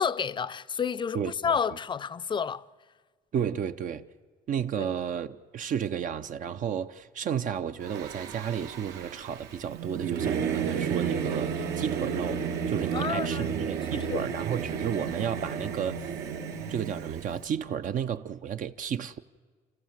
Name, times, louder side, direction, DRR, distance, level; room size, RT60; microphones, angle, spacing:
voice 1, 0.0-2.6 4.8-4.9 12.9-13.5 13.9-14.2, left 6 dB, 30° left, 0.5 m, -30 dB
voice 2, 1.1-1.6 3.3-4.1 4.5-16.1 16.7-19.2, right 8 dB, 50° right, 0.7 m, -32 dB
Singing / Musical instrument, 7.8-17.4, right 7 dB, 80° right, 1.8 m, -32 dB
28.5 x 14.0 x 7.4 m
cardioid pair, 110°, 17 cm